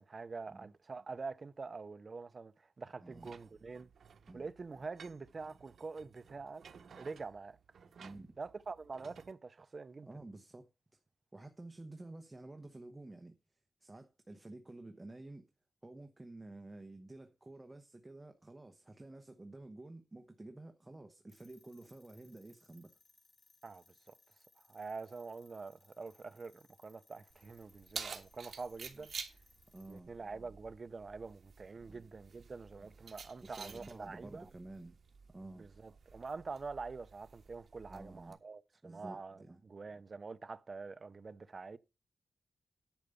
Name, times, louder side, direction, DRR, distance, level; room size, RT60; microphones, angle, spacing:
voice 1, 0.0-3.9 4.3-6.6 6.9-7.6 8.4-10.1 23.6-23.8 24.7-29.1 29.9-34.5 35.5-41.8, right 4 dB, 40° right, 0.6 m, -46 dB
voice 2, 3.0-3.3 4.3-4.5 8.0-8.4 10.1-10.7 11.3-13.3 13.8-15.5 15.8-22.9 29.7-30.1 31.8-32.1 32.8-32.9 33.4-35.0 35.3-35.7 37.9-38.4 38.8-39.6, right 2 dB, 15° right, 1.0 m, -51 dB
sound 1, 3.1-9.3, right 6 dB, 80° right, 0.9 m, -59 dB
sound 2, 21.3-30.1, left 3 dB, 35° left, 1.4 m, -68 dB
Keys jangling, 27.3-38.3, right 5 dB, 60° right, 1.5 m, -51 dB
10.5 x 5.0 x 6.7 m
wide cardioid pair, 160°, 0 cm